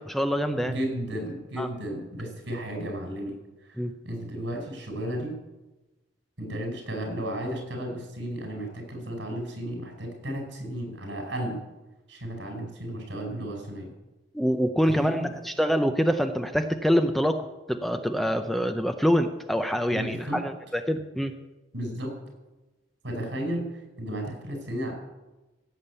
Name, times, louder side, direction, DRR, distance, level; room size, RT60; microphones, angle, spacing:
voice 1, 0.0-0.7 1.6-1.7 3.8-3.9 14.3-21.3, equal, ahead, 7 dB, 0.6 m, -25 dB
voice 2, 0.6-3.3 3.6-5.3 6.4-11.6 12.1-13.9 14.9-15.4 19.9-20.4 21.7-22.1 23.0-23.6 24.0-24.9, right 1 dB, 70° right, 2 dB, 5.3 m, -33 dB
16.5 x 7.3 x 8.3 m, 1.1 s
head